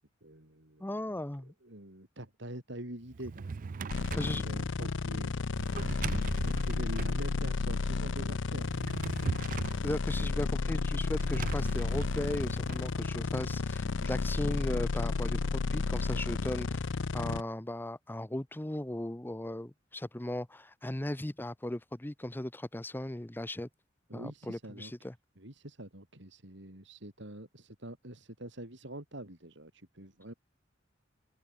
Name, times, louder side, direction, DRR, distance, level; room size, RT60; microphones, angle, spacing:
voice 1, 0.2-1.2 1.6-5.7 6.1-9.0 14.0-14.1 24.1-25.1 25.4-30.3, right 1 dB, 65° right, 5.1 m, -46 dB
voice 2, 0.8-1.5 4.2-4.4 9.8-16.8 17.1-23.7 24.1-25.1, left 1 dB, 10° left, 0.7 m, -37 dB
Drawer open or close, 3.1-4.4 5.5-7.2 8.5-9.9 11.2-12.8, right 5 dB, 45° right, 0.4 m, -39 dB
sound 1, 3.9-17.4, left 4 dB, 70° left, 0.6 m, -32 dB
sound 2, 8.9-16.0, right 1 dB, 85° right, 7.3 m, -56 dB
head